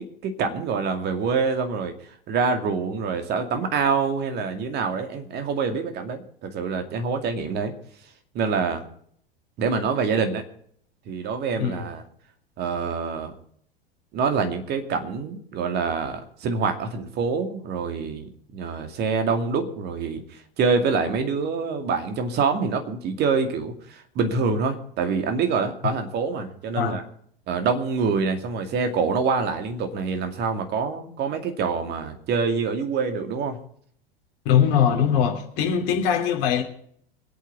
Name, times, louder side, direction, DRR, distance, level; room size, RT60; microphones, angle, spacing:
voice 1, 0.0-1.9 2.3-7.7 8.3-8.8 9.6-10.4 11.1-12.0 12.6-13.3 14.1-20.2 20.6-27.0 27.5-33.6, right 5 dB, 35° right, 2.4 m, -26 dB
voice 2, 34.4-36.6, left 8 dB, 45° left, 3.1 m, -21 dB
25.5 x 8.5 x 4.7 m
figure-of-eight pair, 90°, 29 cm